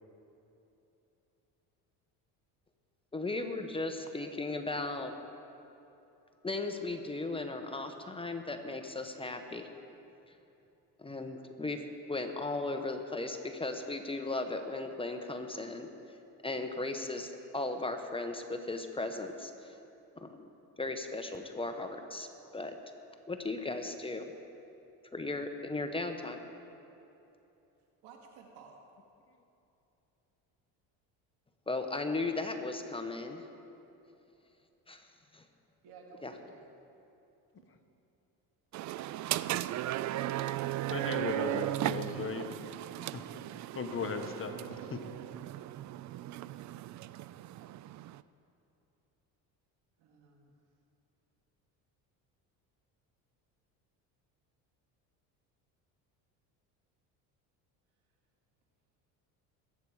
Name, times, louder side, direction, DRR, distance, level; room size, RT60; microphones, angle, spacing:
voice 1, 3.1-5.1 6.4-9.7 11.0-11.8 12.1-15.9 16.4-19.8 20.2-20.5 20.8-22.3 22.5-22.8 23.3-24.3 25.1-26.4 31.7-33.4 34.9-35.0 35.3-35.4 36.2-36.3, left 2 dB, 15° left, 5 dB, 1.1 m, -36 dB
voice 2, 28.0-28.8 35.8-36.7 43.3-43.5 44.4-45.2 50.0-50.5, right 5 dB, 75° right, 1 dB, 2.5 m, -54 dB
sound 1, 38.7-48.2, right 14 dB, 50° right, 0.4 m, -36 dB
voice 3, 40.9-42.7 43.1-43.2 43.7-44.5, left 5 dB, 35° left, 6 dB, 1.2 m, -37 dB
21.5 x 8.7 x 4.9 m, 2.9 s
supercardioid pair, 95°, 38 cm